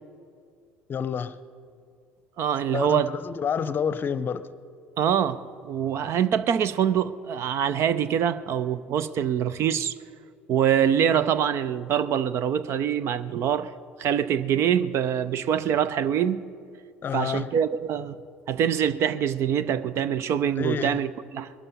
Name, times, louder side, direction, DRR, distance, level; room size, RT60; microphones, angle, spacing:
voice 1, 0.9-1.3 2.7-4.4 17.0-17.5 20.5-21.0, left 7 dB, 35° left, 0.7 m, -28 dB
voice 2, 2.4-3.1 5.0-9.9 10.5-13.7 14.0-16.5 17.1-18.2 18.5-21.5, right 9 dB, 50° right, 0.6 m, -24 dB
21.5 x 12.5 x 5.4 m
figure-of-eight pair, 60°, 6 cm